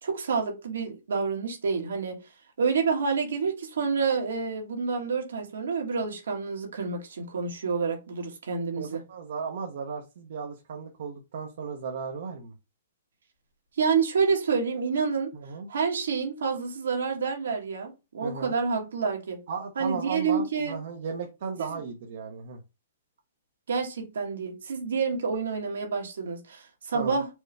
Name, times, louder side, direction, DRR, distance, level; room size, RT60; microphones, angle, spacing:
voice 1, 0.0-2.2 2.6-9.0 13.8-15.3 15.7-19.4 19.8-20.8 21.7-21.8 23.7-27.3, right 5 dB, 85° right, 1.3 m, -28 dB
voice 2, 8.8-12.5 15.3-15.7 18.2-18.5 19.5-22.6 26.9-27.2, right 5 dB, 65° right, 0.8 m, -35 dB
4.4 x 2.2 x 3.3 m
hypercardioid pair, 150°, 0 cm